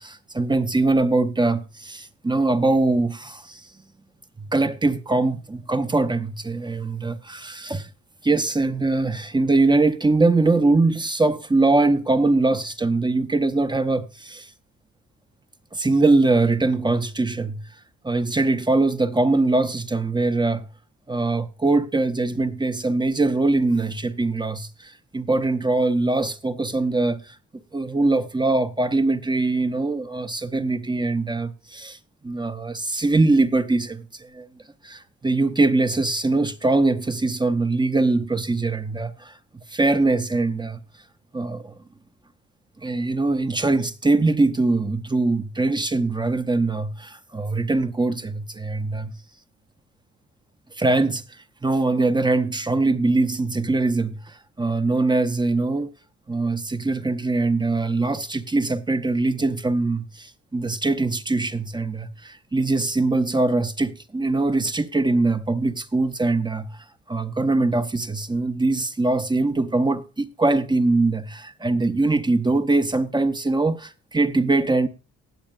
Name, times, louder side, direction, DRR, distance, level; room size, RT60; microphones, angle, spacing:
voice 1, 0.0-3.8 4.4-7.9 8.2-14.5 15.7-17.6 18.0-20.7 21.1-27.4 27.7-32.0 32.2-34.5 34.8-40.8 41.3-41.8 42.8-49.1 50.7-55.9 56.3-74.9, right 2 dB, 15° right, 0.8 m, -22 dB
19.5 x 7.2 x 2.4 m
cardioid pair, 90°, 30 cm